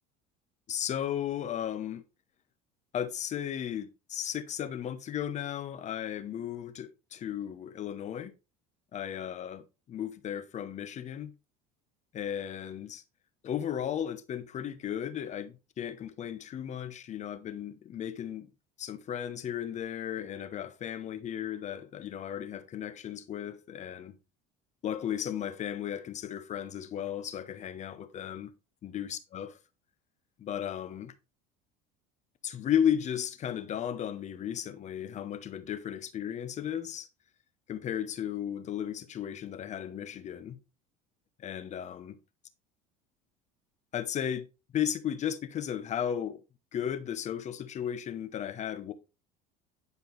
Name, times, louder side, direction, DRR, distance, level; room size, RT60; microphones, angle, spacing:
voice 1, 0.7-2.0 2.9-8.3 8.9-11.3 12.1-13.0 13.4-18.5 18.8-24.2 24.8-28.5 28.8-29.5 30.4-31.1 32.4-37.1 37.7-40.6 41.4-42.2 43.9-44.5 44.7-46.4 46.7-48.9, left 9 dB, 40° left, 0.9 m, -35 dB
10.5 x 4.6 x 3.3 m
supercardioid pair, 110°, 19 cm